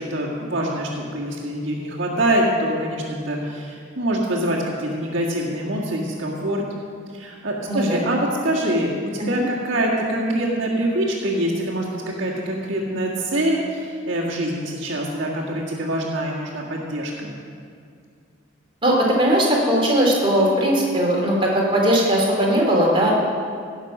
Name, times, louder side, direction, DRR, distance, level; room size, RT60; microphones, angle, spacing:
voice 1, 0.0-6.6 7.1-17.4, right 1 dB, 70° right, -8 dB, 1.8 m, -24 dB
voice 2, 7.7-8.1 9.2-9.4 18.8-23.1, right 1 dB, 25° right, -3 dB, 2.6 m, -19 dB
17.5 x 6.6 x 6.0 m, 2.2 s
head